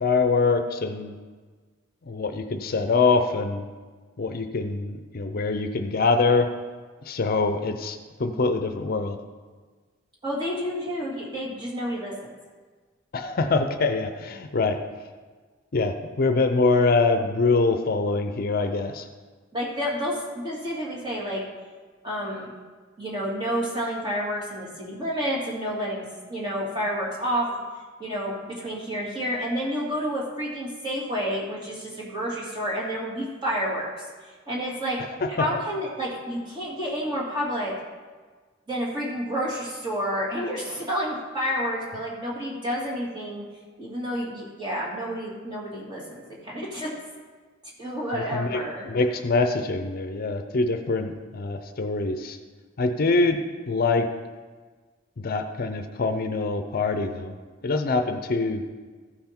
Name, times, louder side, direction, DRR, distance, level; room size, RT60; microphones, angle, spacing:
voice 1, 0.0-1.1 2.1-3.7 4.2-6.5 7.0-9.2 13.1-14.8 15.7-19.1 35.2-35.6 48.1-52.4 52.8-53.4 53.7-54.1 55.2-57.3 57.6-58.6, left 3 dB, 50° left, 7 dB, 0.5 m, -24 dB
voice 2, 10.2-12.3 19.5-21.4 22.0-22.5 23.0-27.5 28.0-33.9 34.5-35.0 35.3-37.7 38.7-43.4 43.8-46.9 47.8-48.9, equal, 25° right, -5 dB, 2.4 m, -29 dB
14.5 x 5.8 x 4.4 m, 1.4 s
head